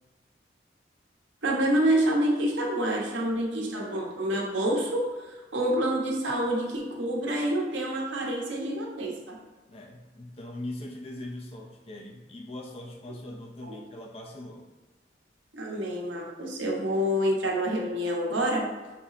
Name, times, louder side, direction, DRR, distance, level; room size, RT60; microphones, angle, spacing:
voice 1, 1.4-5.1 5.5-9.4 13.6-13.8 15.5-18.7, right 1 dB, 90° right, -1 dB, 0.9 m, -27 dB
voice 2, 9.7-14.7, left 1 dB, 35° left, 2 dB, 0.4 m, -41 dB
5.8 x 2.0 x 3.9 m, 1.2 s
head